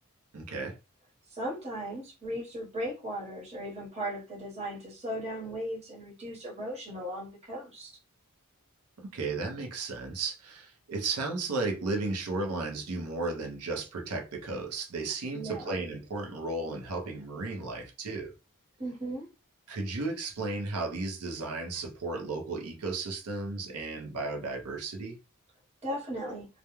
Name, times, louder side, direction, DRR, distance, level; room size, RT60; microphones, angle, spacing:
voice 1, 0.3-0.8 9.0-18.3 19.7-25.2, right 3 dB, 85° right, 0.6 m, -34 dB
voice 2, 1.3-8.0 15.3-15.7 18.8-19.3 25.8-26.5, right 1 dB, 30° right, 0.9 m, -37 dB
2.3 x 2.1 x 2.9 m
head